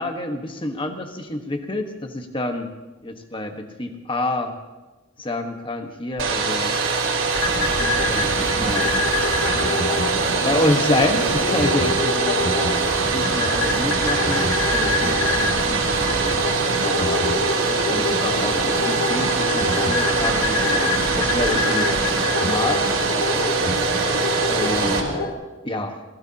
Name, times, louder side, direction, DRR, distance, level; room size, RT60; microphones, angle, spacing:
voice 1, 0.0-2.7 3.0-4.6 5.2-6.8 7.6-9.6 10.4-12.5 13.1-16.4 16.8-17.2 17.6-22.0 22.4-22.9 24.5-25.1 25.6-26.0, left 1 dB, 25° left, 5 dB, 1.3 m, -28 dB
Domestic sounds home sounds, 6.2-25.0, right 4 dB, 80° right, 3.3 m, -23 dB
sound 1, 7.3-25.3, left 3 dB, 85° left, 2.2 m, -25 dB
25.5 x 17.5 x 2.9 m, 1.2 s
head